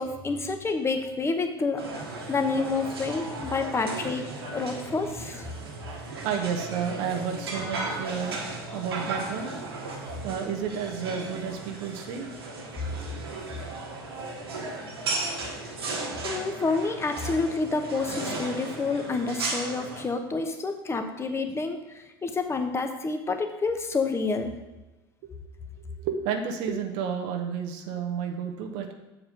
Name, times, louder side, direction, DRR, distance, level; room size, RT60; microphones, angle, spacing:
voice 1, 0.0-1.8 2.3-5.5 16.2-24.5, left 4 dB, 20° left, 6 dB, 1.0 m, -28 dB
sound 1, 1.8-20.0, right 3 dB, 85° right, 1.5 m, -35 dB
voice 2, 6.2-8.4 8.7-9.5 10.2-12.3 25.2-25.3 25.8-28.9, right 7 dB, 65° right, 3 dB, 0.9 m, -31 dB
7.3 x 4.9 x 5.1 m, 1.1 s
hypercardioid pair, 80°, 13 cm